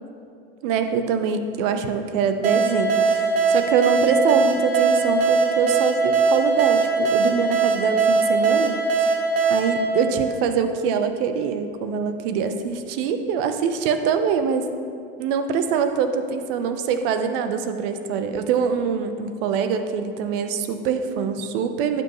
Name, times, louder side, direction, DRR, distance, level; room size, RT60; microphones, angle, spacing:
voice 1, 0.6-8.7 9.0-9.1 9.5-14.7 15.2-22.0, right 6 dB, 65° right, 8 dB, 0.9 m, -24 dB
sound 1, 2.4-10.9, right 4 dB, 90° right, 1.2 m, -21 dB
12.0 x 7.9 x 3.1 m, 2.4 s
hypercardioid pair, 80°, 30 cm